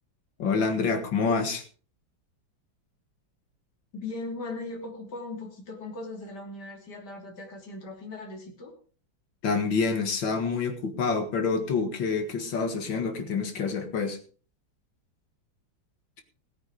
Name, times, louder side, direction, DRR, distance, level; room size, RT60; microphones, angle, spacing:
voice 1, 0.4-1.6 9.4-14.2, left 4 dB, 75° left, 7 dB, 2.6 m, -27 dB
voice 2, 3.9-8.7, left 2 dB, 55° left, 1 dB, 3.7 m, -38 dB
17.5 x 8.9 x 5.0 m, 0.40 s
omnidirectional pair, 2.1 m